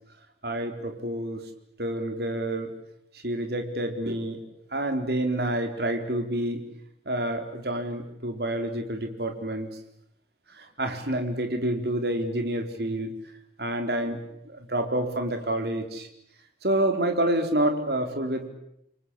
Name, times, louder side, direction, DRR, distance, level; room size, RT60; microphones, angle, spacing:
voice 1, 0.4-1.4 1.8-2.7 3.2-4.4 4.7-6.6 7.1-9.7 10.5-13.1 13.6-14.2 14.5-16.1 16.6-18.5, right 1 dB, 70° right, 6 dB, 4.2 m, -28 dB
29.0 x 24.0 x 8.5 m, 0.78 s
head